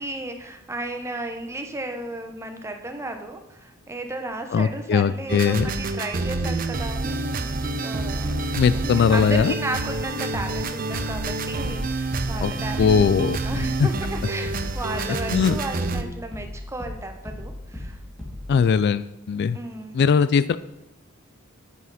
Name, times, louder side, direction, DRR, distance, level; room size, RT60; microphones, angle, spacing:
voice 1, 0.0-8.3 8.7-18.0 18.5-18.6 19.5-20.0, right 2 dB, 15° right, 5 dB, 1.0 m, -34 dB
voice 2, 4.5-5.7 8.5-9.5 12.4-12.5 12.8-13.4 13.8-13.9 15.3-15.6 18.5-19.6 19.9-20.6, left 6 dB, 50° left, 15 dB, 0.3 m, -20 dB
sound 1, 5.3-16.0, right 2 dB, 40° right, 0.6 m, -28 dB
sound 2, 11.2-18.7, left 1 dB, 5° left, 2.3 m, -38 dB
9.2 x 8.3 x 4.2 m, 0.90 s
head